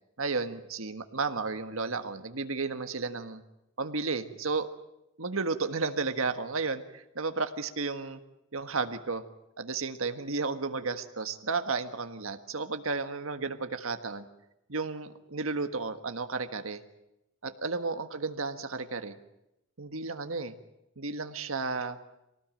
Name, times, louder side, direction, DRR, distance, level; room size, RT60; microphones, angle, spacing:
voice 1, 0.2-3.4 3.8-4.7 5.2-8.2 8.5-9.2 9.6-14.3 14.7-16.8 17.4-19.2 19.8-20.5 21.0-22.0, right 4 dB, 75° right, 8 dB, 1.6 m, -33 dB
24.0 x 18.5 x 9.0 m, 0.87 s
head